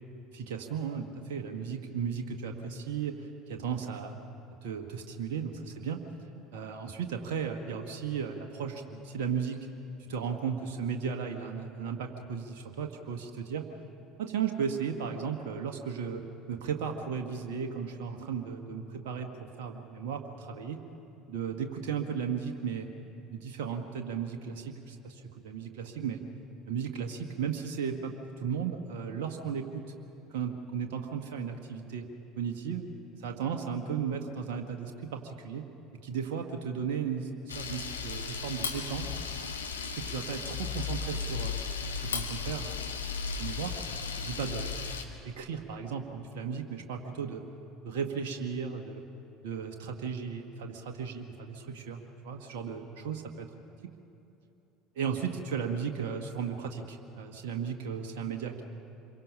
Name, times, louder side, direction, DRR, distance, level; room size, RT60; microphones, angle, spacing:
voice 1, 0.3-3.2 3.5-4.1 4.6-6.0 6.5-9.6 10.0-13.6 14.2-16.2 16.5-20.8 21.3-22.9 23.3-26.2 26.7-29.8 30.3-32.1 32.4-32.8 33.2-35.6 36.0-39.1 39.8-42.8 43.4-43.7 44.2-44.7 45.2-47.4 47.8-49.0 49.4-53.5 54.9-58.6, right 7 dB, 65° right, 4 dB, 1.5 m, -35 dB
Camera, 37.5-45.0, left 5 dB, 85° left, 1.4 m, -35 dB
26.5 x 23.0 x 5.6 m, 2.8 s
figure-of-eight pair, 65°, 0 cm